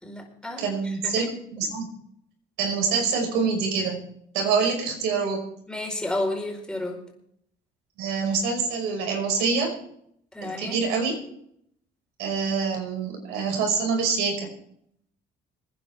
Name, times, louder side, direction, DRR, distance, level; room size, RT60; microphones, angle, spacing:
voice 1, 0.0-1.3 5.7-7.0 10.3-10.8, left 1 dB, 5° left, 1 dB, 4.6 m, -32 dB
voice 2, 0.6-1.3 1.5-1.9 2.6-4.0 4.3-5.4 8.0-9.8 10.4-11.2 12.2-14.5, right 5 dB, 90° right, 2 dB, 5.6 m, -25 dB
26.5 x 10.0 x 3.5 m, 0.70 s
cardioid pair, 110°, 17 cm